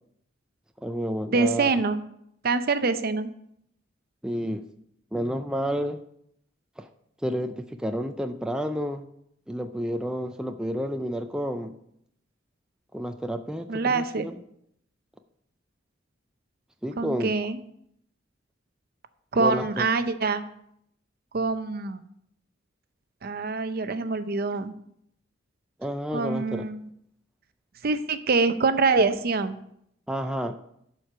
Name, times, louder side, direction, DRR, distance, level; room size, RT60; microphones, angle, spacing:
voice 1, 0.8-1.7 4.2-4.7 5.1-6.0 6.8-6.9 7.2-9.1 9.5-11.7 12.9-14.4 16.8-17.3 19.4-19.8 25.8-26.6 30.1-30.6, equal, 5° right, 6 dB, 0.4 m, -30 dB
voice 2, 1.3-2.0 2.4-3.3 13.7-14.3 17.0-17.6 19.3-20.4 21.3-22.0 23.2-24.7 26.1-26.9 27.8-29.6, right 4 dB, 50° right, 11 dB, 0.6 m, -25 dB
11.0 x 4.6 x 5.8 m, 0.73 s
head